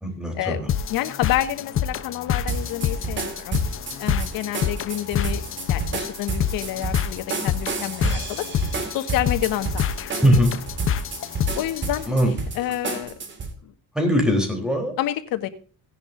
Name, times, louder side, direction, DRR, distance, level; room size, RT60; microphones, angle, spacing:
voice 1, 0.0-0.6 10.2-10.5 12.1-12.3 13.9-14.9, equal, ahead, 3 dB, 3.7 m, -20 dB
sound 1, 0.7-12.1, left 9 dB, 40° left, 0.8 m, -28 dB
voice 2, 0.9-3.6 4.0-5.4 5.7-8.5 8.9-9.9 10.2-10.3 11.5-13.1 13.6-13.7 15.0-15.5, left 13 dB, 85° left, 8 dB, 1.7 m, -28 dB
sound 2, 2.5-13.5, right 3 dB, 35° right, 2.2 m, -30 dB
17.5 x 10.5 x 2.6 m, 0.38 s
cardioid pair, 165°, 34 cm